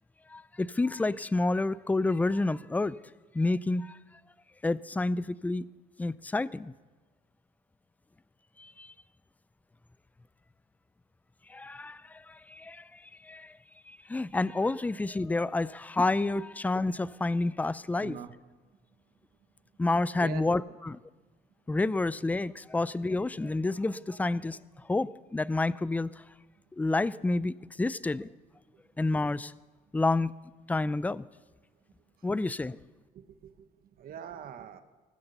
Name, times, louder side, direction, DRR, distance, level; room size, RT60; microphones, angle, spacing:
voice 1, 0.3-3.0 3.3-4.0 4.6-5.6 6.0-6.7 8.6-8.9 11.5-13.5 13.9-18.2 19.8-21.0 21.7-24.6 24.9-26.1 26.7-28.3 29.0-29.5 29.9-30.3 30.7-31.3 32.2-32.8, left 2 dB, 10° left, 18 dB, 0.4 m, -29 dB
voice 2, 17.9-18.3 20.2-20.4 33.1-34.8, right 9 dB, 60° right, 9 dB, 1.3 m, -43 dB
20.0 x 9.6 x 6.8 m, 1.3 s
cardioid pair, 110°, 17 cm